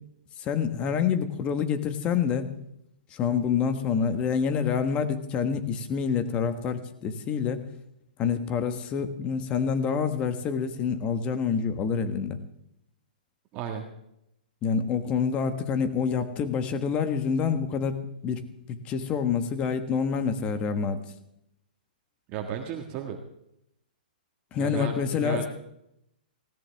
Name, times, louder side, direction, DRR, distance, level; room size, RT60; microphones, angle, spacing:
voice 1, 0.4-2.5 3.1-7.6 8.2-12.4 14.6-21.0 24.5-25.5, left 6 dB, 20° left, 10 dB, 1.3 m, -27 dB
voice 2, 13.5-13.8 22.3-23.2 24.6-25.4, right 8 dB, 25° right, 2 dB, 1.7 m, -34 dB
19.0 x 17.0 x 3.5 m, 0.80 s
hypercardioid pair, 150°, 5 cm